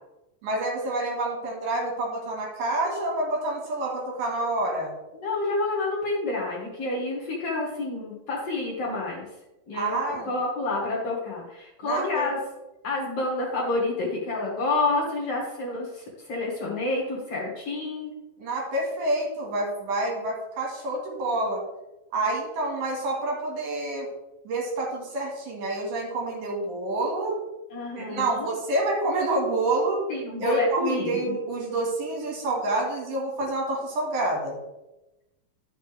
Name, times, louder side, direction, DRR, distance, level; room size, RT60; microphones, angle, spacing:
voice 1, 0.4-4.9 9.7-10.3 11.8-12.3 18.4-21.6 22.1-24.1 24.4-27.4 28.0-30.0 30.4-34.6, right 2 dB, 65° right, -1 dB, 3.3 m, -28 dB
voice 2, 5.1-9.3 9.7-10.0 10.2-12.4 12.8-18.1 27.7-28.5 30.1-31.3, left 2 dB, 50° left, -4 dB, 2.4 m, -29 dB
11.5 x 5.9 x 3.4 m, 0.99 s
omnidirectional pair, 4.1 m